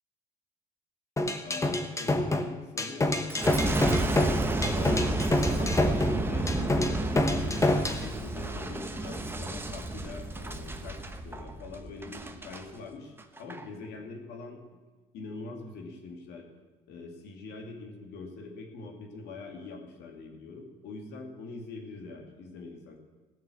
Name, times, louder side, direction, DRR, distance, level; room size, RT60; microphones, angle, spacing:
sound 1, 1.2-8.1, left 2 dB, 15° left, 1.1 m, -27 dB
voice 1, 1.4-3.2 3.7-4.2 4.5-14.6 15.1-16.5 16.9-23.0, left 3 dB, 80° left, 2 dB, 2.5 m, -43 dB
Boom, 3.3-12.6 13.2-13.6, right 2 dB, 15° right, 1.1 m, -31 dB
16.0 x 6.6 x 8.5 m, 1.3 s
cardioid pair, 110°, 17 cm